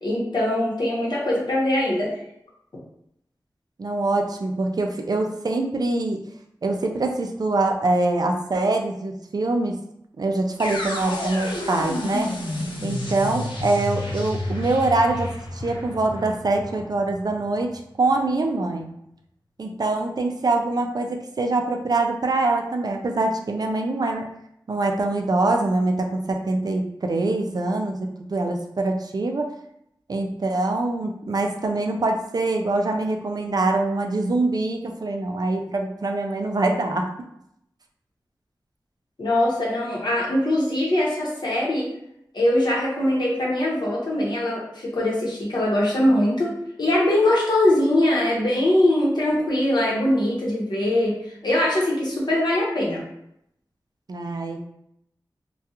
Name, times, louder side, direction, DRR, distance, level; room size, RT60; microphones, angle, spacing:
voice 1, 0.0-2.1 39.2-41.9 42.3-51.2 51.4-53.0, left 1 dB, 60° left, -5 dB, 0.9 m, -22 dB
voice 2, 3.8-6.2 6.6-9.8 10.2-12.3 12.8-17.7 18.0-18.9 19.6-24.3 24.7-29.5 30.1-37.1 54.1-54.6, right 2 dB, 55° right, 3 dB, 0.3 m, -24 dB
sound 1, 10.6-18.5, left 2 dB, 85° left, 0.5 m, -31 dB
2.3 x 2.3 x 2.8 m, 0.76 s
wide cardioid pair, 55°, 8 cm